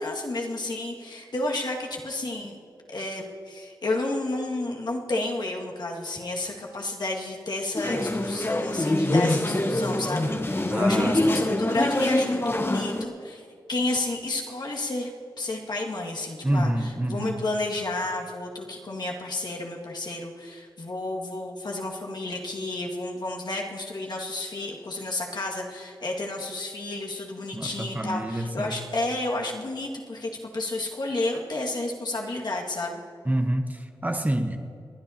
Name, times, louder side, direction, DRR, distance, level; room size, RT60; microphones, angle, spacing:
voice 1, 0.0-2.6 2.9-13.4 13.7-15.1 15.4-33.0, left 2 dB, 55° left, -1 dB, 2.0 m, -31 dB
sound 1, 7.8-13.0, left 1 dB, 25° left, 1.1 m, -24 dB
voice 2, 10.7-11.2 16.4-17.4 27.5-28.8 33.2-34.6, right 1 dB, 20° right, 5 dB, 1.2 m, -27 dB
29.5 x 9.9 x 2.9 m, 2.4 s
cardioid pair, 40°, 9 cm